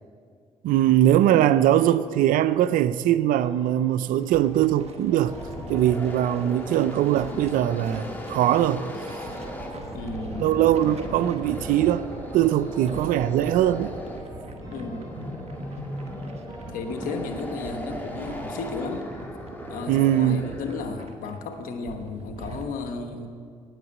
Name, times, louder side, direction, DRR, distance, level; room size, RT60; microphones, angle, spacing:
voice 1, 0.6-5.4 5.7-8.9 10.4-12.0 12.3-14.0 19.9-20.4, right 12 dB, 85° right, 0.4 m, -21 dB
sound 1, 3.4-18.4, equal, 30° right, 3.3 m, -50 dB
sound 2, 4.2-22.7, right 3 dB, 50° right, 1.3 m, -42 dB
sound 3, 4.9-21.0, left 1 dB, 15° left, 2.2 m, -37 dB
voice 2, 9.9-10.6 14.7-15.1 16.7-19.1 19.7-23.3, left 4 dB, 85° left, 1.1 m, -34 dB
9.5 x 8.1 x 9.3 m
supercardioid pair, 60°, 14 cm